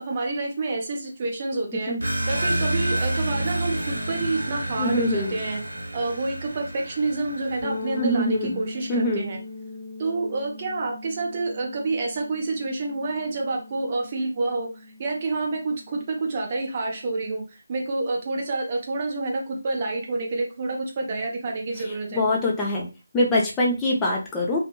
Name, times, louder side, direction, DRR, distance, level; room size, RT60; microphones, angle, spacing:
voice 1, 0.0-5.6 5.9-9.4 10.0-17.4 17.7-22.2, right 3 dB, 30° right, 0 dB, 0.7 m, -28 dB
sound 1, 2.0-8.3, right 1 dB, 65° right, 0.9 m, -29 dB
voice 2, 4.8-5.3 8.0-8.6 8.9-9.3 22.1-22.9 23.1-24.6, left 1 dB, 10° left, -3 dB, 0.5 m, -23 dB
sound 2, 7.6-17.3, left 3 dB, 80° left, 1.0 m, -40 dB
2.6 x 2.5 x 2.3 m, 0.29 s
figure-of-eight pair, 155°, 0 cm